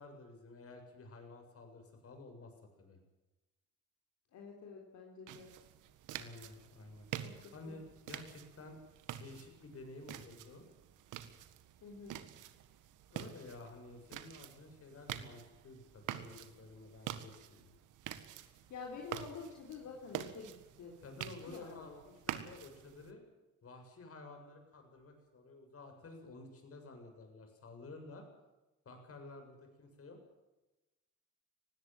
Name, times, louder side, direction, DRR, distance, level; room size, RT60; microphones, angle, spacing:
voice 1, 0.0-2.5 2.8-3.0 6.1-8.8 9.2-10.7 13.1-17.7 21.0-23.2 23.6-28.2 28.9-30.2, left 2 dB, 50° left, 5 dB, 7.2 m, -52 dB
voice 2, 4.3-5.5 7.2-7.8 11.8-12.2 18.7-22.0, left 5 dB, 70° left, 0 dB, 4.1 m, -49 dB
sound 1, 5.3-23.1, right 11 dB, 85° right, 1.7 m, -47 dB
19.5 x 16.5 x 9.1 m, 1.1 s
cardioid pair, 90°, 30 cm